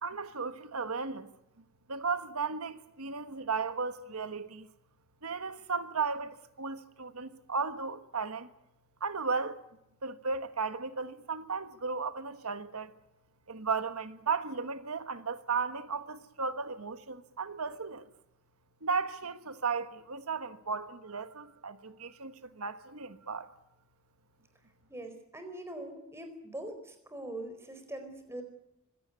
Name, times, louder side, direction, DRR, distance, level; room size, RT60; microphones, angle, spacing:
voice 1, 0.0-1.3 1.9-4.7 5.2-8.5 9.0-9.6 10.0-12.9 13.5-18.1 18.8-23.5, right 5 dB, 85° right, 1.4 m, -35 dB
voice 2, 24.9-28.4, right 1 dB, 10° right, 4.4 m, -42 dB
25.0 x 17.0 x 9.5 m
head